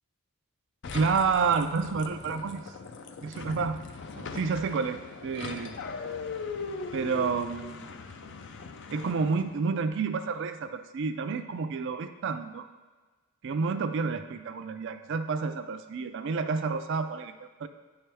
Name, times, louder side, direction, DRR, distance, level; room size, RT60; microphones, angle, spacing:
sound 1, 0.8-9.6, left 4 dB, 55° left, 0.4 m, -40 dB
voice 1, 0.9-2.6 3.2-3.8 4.1-5.7 6.9-7.9 8.9-12.7 13.4-17.3 17.6-17.7, right 5 dB, 55° right, 9 dB, 0.4 m, -29 dB
8.7 x 4.5 x 3.5 m, 1.3 s
head